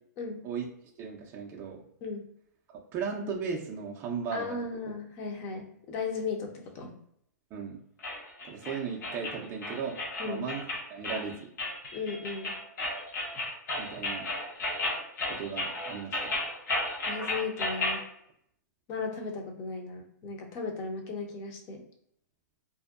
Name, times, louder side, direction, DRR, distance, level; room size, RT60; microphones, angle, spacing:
voice 1, 1.0-1.8 2.7-4.6 7.5-7.8 8.4-10.6 10.9-11.3 13.8-14.3 15.3-16.4, right 6 dB, 20° right, -2 dB, 0.4 m, -36 dB
voice 2, 4.3-7.0 10.2-10.4 11.9-12.6 17.1-18.0 18.9-21.8, left 4 dB, 25° left, 3 dB, 0.6 m, -36 dB
sound 1, 8.0-18.0, left 2 dB, 75° left, 1.0 m, -34 dB
2.6 x 2.1 x 2.3 m, 0.70 s
hypercardioid pair, 150°, 10 cm